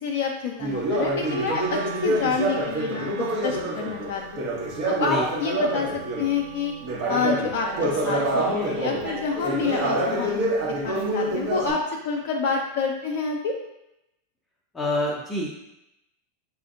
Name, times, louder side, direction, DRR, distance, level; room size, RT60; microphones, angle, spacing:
voice 1, 0.0-3.1 3.4-4.4 4.8-5.9 6.2-6.7 7.1-13.5, left 5 dB, 60° left, 0 dB, 0.4 m, -28 dB
Conversation, 0.6-6.3 6.8-11.7, right 1 dB, 50° right, 1.2 m, -27 dB
Wind instrument woodwind instrument, 1.2-11.3, right 6 dB, 80° right, 0.4 m, -42 dB
voice 2, 14.7-15.6, left 1 dB, 15° left, -2 dB, 0.6 m, -27 dB
6.2 x 2.5 x 2.5 m, 0.88 s
hypercardioid pair, 90°, 0 cm